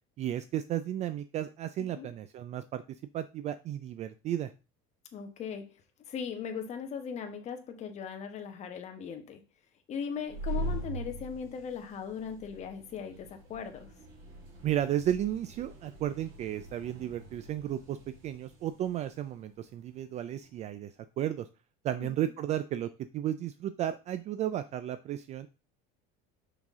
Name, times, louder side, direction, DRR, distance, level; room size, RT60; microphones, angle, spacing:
voice 1, 0.2-2.8 3.1-4.5 14.6-18.0 18.2-20.9 21.2-21.5 21.8-25.5, right 11 dB, 35° right, 0.4 m, -33 dB
voice 2, 5.1-9.4 9.9-13.9 22.0-22.1, left 7 dB, 30° left, 1.1 m, -39 dB
sound 1, 10.1-20.6, right 1 dB, 60° right, 3.5 m, -42 dB
6.1 x 5.8 x 3.6 m
cardioid pair, 160°, 21 cm